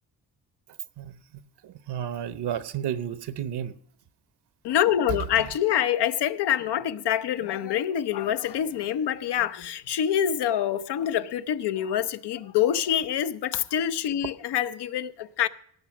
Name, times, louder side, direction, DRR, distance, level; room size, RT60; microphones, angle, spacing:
voice 1, 1.0-3.7 5.3-5.5, right 9 dB, 75° right, 1.0 m, -33 dB
voice 2, 4.6-15.5, left 10 dB, 80° left, 0.8 m, -26 dB
18.0 x 7.0 x 6.0 m
cardioid pair, 115°, 40 cm